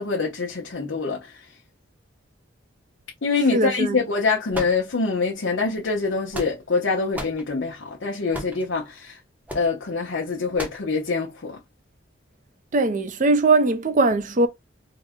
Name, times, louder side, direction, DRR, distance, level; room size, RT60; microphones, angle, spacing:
voice 1, 0.0-1.5 3.2-9.2 9.5-11.6, left 4 dB, 70° left, 0.7 m, -25 dB
voice 2, 3.5-4.0 12.7-14.5, right 3 dB, 40° right, 0.5 m, -20 dB
sound 1, 4.5-5.3 6.0-6.8 7.1-7.4 8.3-8.7 9.5-9.7 10.6-10.9, equal, 10° right, 0.8 m, -34 dB
3.8 x 2.1 x 3.6 m
head